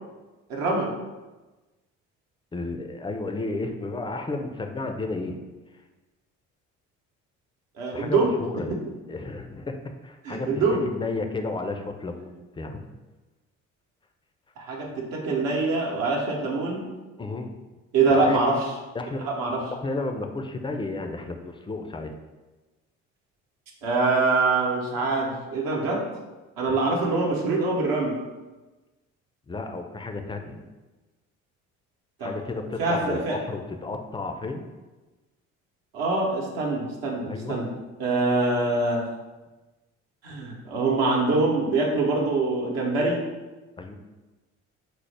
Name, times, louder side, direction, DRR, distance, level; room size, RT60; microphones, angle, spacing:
voice 1, 0.5-0.9 7.8-8.3 8.7-8.8 10.2-10.9 14.6-16.8 17.9-18.6 19.2-19.6 23.8-26.1 26.6-28.2 32.2-32.3 32.8-33.4 35.9-37.7 38.0-39.1 40.2-43.2, right 3 dB, 70° right, -1 dB, 0.9 m, -24 dB
voice 2, 2.5-5.4 7.9-8.7 9.1-10.5 10.9-12.8 17.2-17.5 18.1-18.4 18.9-19.3 19.7-22.1 26.7-26.9 29.5-30.6 32.2-34.6 37.3-37.6 43.8-44.0, left 3 dB, 15° left, 5 dB, 0.4 m, -32 dB
4.2 x 2.0 x 3.2 m, 1.2 s
hypercardioid pair, 55°, 36 cm